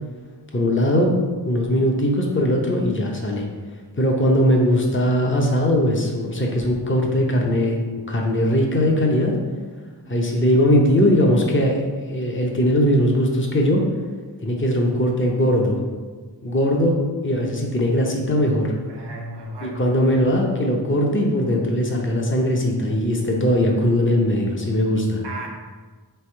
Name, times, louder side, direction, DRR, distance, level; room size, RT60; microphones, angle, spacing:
voice 1, 0.5-3.5 4.0-7.8 8.1-9.4 10.1-11.8 12.1-13.8 14.4-15.8 16.4-18.7 19.6-25.2, equal, 30° left, 0 dB, 0.8 m, -20 dB
voice 2, 18.8-19.9 25.2-25.5, right 2 dB, 75° right, 0 dB, 0.9 m, -35 dB
3.4 x 3.4 x 4.4 m, 1.4 s
wide cardioid pair, 60°, 42 cm